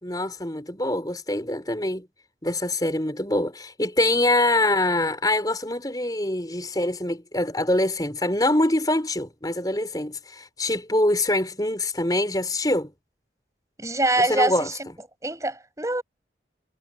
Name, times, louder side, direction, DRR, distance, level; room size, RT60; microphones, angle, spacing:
voice 1, 0.0-2.1 2.4-12.9 14.2-14.7, left 1 dB, 20° left, 5.0 m, -24 dB
voice 2, 13.8-14.9 15.2-16.0, right 2 dB, 20° right, 5.7 m, -24 dB
head